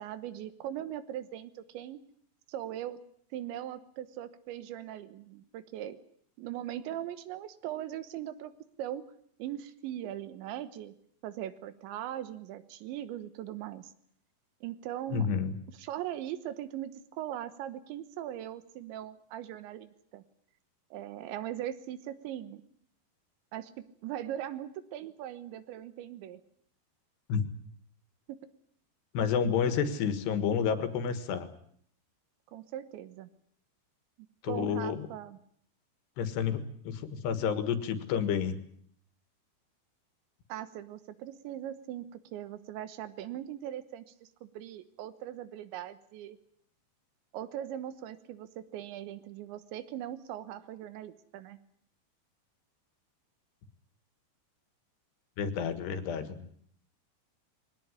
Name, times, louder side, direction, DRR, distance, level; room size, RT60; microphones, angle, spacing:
voice 1, 0.0-2.0 2.5-3.0 3.3-6.0 6.4-9.1 9.4-10.9 11.2-13.9 14.6-15.3 15.7-20.2 20.9-22.6 23.5-26.4 28.3-28.4 32.5-33.3 34.5-35.4 40.5-46.4 47.3-51.6, right 12 dB, 85° right, 13 dB, 3.5 m, -40 dB
voice 2, 15.1-15.6 27.3-27.4 29.1-31.5 34.4-35.1 36.2-38.6 55.4-56.5, left 7 dB, 70° left, 11 dB, 3.6 m, -30 dB
21.5 x 18.0 x 9.8 m, 0.64 s
omnidirectional pair, 5.2 m